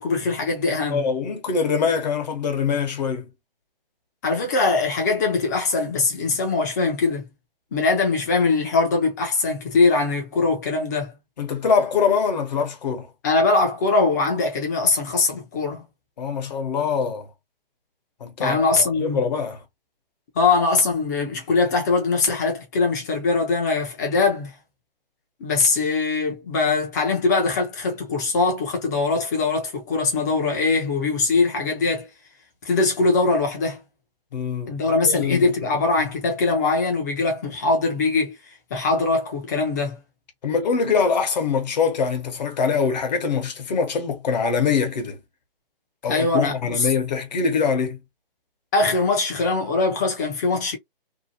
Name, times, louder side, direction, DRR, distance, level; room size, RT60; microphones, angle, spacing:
voice 1, 0.0-1.0 4.2-7.3 7.7-11.1 13.2-15.8 18.4-19.2 20.4-24.5 25.4-32.1 32.6-33.8 34.7-38.4 38.7-40.0 46.1-46.9 48.7-50.8, left 3 dB, 20° left, 0.5 m, -22 dB
voice 2, 0.9-3.3 11.4-13.1 16.2-17.3 18.2-19.6 34.3-35.5 40.4-45.2 46.0-48.0, left 5 dB, 45° left, 0.9 m, -23 dB
2.7 x 2.1 x 2.6 m
hypercardioid pair, 150°, 29 cm